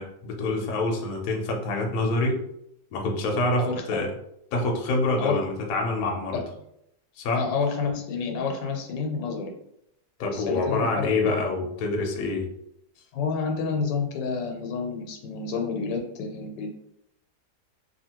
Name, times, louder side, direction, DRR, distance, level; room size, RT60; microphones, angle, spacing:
voice 1, 0.0-2.4 2.9-4.1 4.5-6.3 7.2-7.4 10.2-12.5, left 2 dB, 65° left, 1 dB, 1.0 m, -26 dB
voice 2, 7.3-9.5 10.3-11.3 13.1-16.8, left 5 dB, 85° left, 4 dB, 1.3 m, -29 dB
2.8 x 2.7 x 2.8 m, 0.77 s
omnidirectional pair, 1.9 m